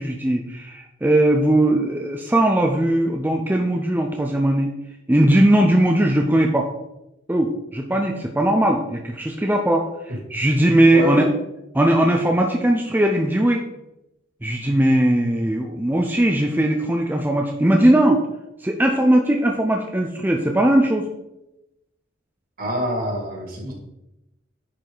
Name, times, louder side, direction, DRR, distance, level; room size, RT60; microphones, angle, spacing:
voice 1, 0.0-4.7 5.1-6.7 7.3-9.9 10.3-11.3 11.7-13.6 14.4-18.2 18.6-21.1 23.6-23.7, right 1 dB, 10° right, 1 dB, 0.6 m, -19 dB
voice 2, 10.9-11.3 22.6-23.7, equal, 50° right, 0 dB, 2.4 m, -25 dB
10.0 x 4.7 x 4.0 m, 0.90 s
head